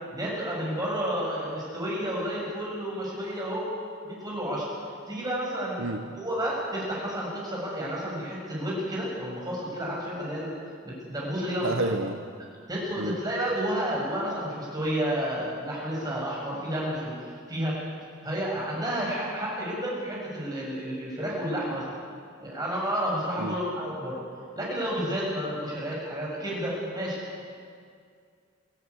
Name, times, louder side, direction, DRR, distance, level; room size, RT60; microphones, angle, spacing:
voice 1, 0.1-3.7 4.0-4.7 5.1-10.5 10.8-11.9 12.7-17.8 18.2-21.9 22.4-24.2 24.6-27.4, equal, 20° right, -4 dB, 7.0 m, -31 dB
voice 2, 11.6-12.2 13.0-13.2 23.4-23.6, right 2 dB, 70° right, 6 dB, 1.1 m, -29 dB
23.5 x 14.0 x 9.8 m, 2.2 s
head